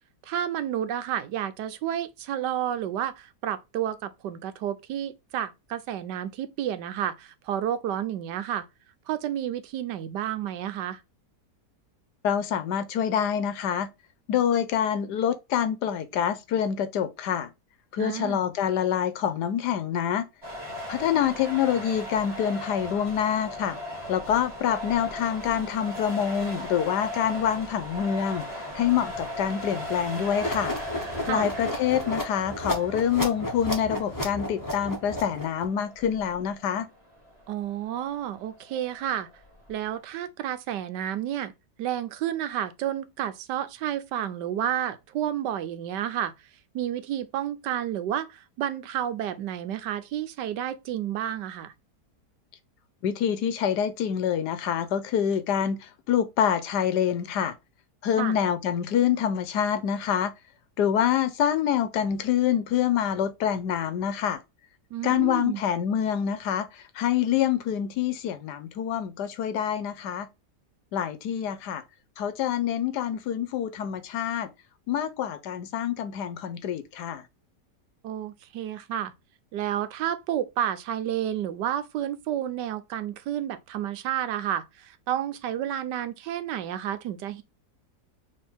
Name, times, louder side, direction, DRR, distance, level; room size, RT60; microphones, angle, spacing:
voice 1, 0.3-8.7 9.1-11.0 18.0-18.4 31.2-31.5 37.5-39.3 39.7-41.5 41.8-46.3 46.7-51.7 58.2-58.4 64.9-65.6 78.0-79.1 79.5-87.4, right 10 dB, 85° right, 1.3 m, -30 dB
voice 2, 12.2-13.9 14.3-17.5 17.9-20.3 20.9-23.8 24.1-28.5 28.7-30.7 31.3-36.9 53.0-57.5 58.0-60.3 60.8-64.4 65.0-70.3 70.9-71.8 72.2-74.5 74.9-77.2, left 9 dB, 75° left, 1.3 m, -26 dB
sound 1, 20.4-40.0, equal, 15° right, 2.4 m, -38 dB
sound 2, 30.4-35.6, left 1 dB, 15° left, 1.1 m, -33 dB
4.3 x 3.3 x 3.4 m
omnidirectional pair, 1.8 m